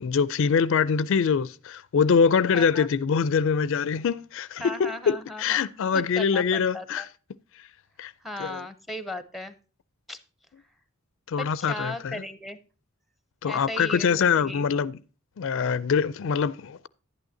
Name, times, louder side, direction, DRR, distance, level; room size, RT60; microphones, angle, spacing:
voice 1, 0.0-7.1 8.0-8.1 8.4-8.6 11.3-12.2 13.4-15.0 15.4-16.9, left 6 dB, 60° left, 0.4 m, -24 dB
voice 2, 2.5-2.9 4.6-7.1 8.2-9.5 10.1-10.2 11.4-12.6 13.4-14.6, left 1 dB, ahead, 0.7 m, -36 dB
11.0 x 9.0 x 2.7 m
head